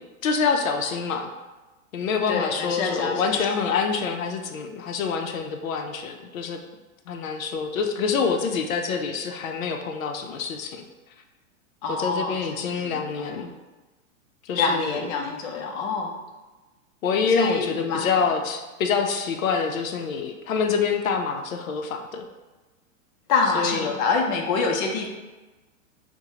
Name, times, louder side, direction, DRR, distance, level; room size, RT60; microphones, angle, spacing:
voice 1, 0.2-1.3 1.9-6.6 7.1-10.8 12.0-13.5 14.4-15.0 17.0-22.3 23.5-24.0, left 5 dB, 85° left, 5 dB, 0.6 m, -26 dB
voice 2, 2.3-3.2 11.8-13.5 14.5-16.2 17.3-18.2 23.3-25.1, left 4 dB, 35° left, 1 dB, 0.6 m, -26 dB
5.9 x 2.2 x 2.8 m, 1.2 s
hypercardioid pair, 145°, 40 cm